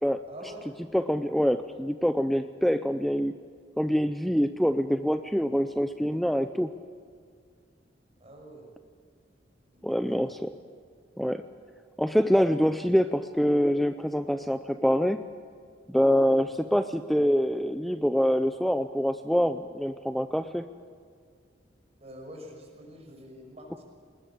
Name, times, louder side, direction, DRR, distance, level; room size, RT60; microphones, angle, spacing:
voice 1, 0.3-0.7 8.2-8.7 9.7-10.3 16.5-16.6 22.0-23.8, equal, 35° right, 1 dB, 5.9 m, -46 dB
voice 2, 0.9-3.3 3.8-6.7 9.8-10.5 11.2-11.4 12.0-15.2 15.9-20.7, equal, ahead, 9 dB, 0.5 m, -25 dB
20.5 x 20.0 x 8.6 m, 2.1 s
head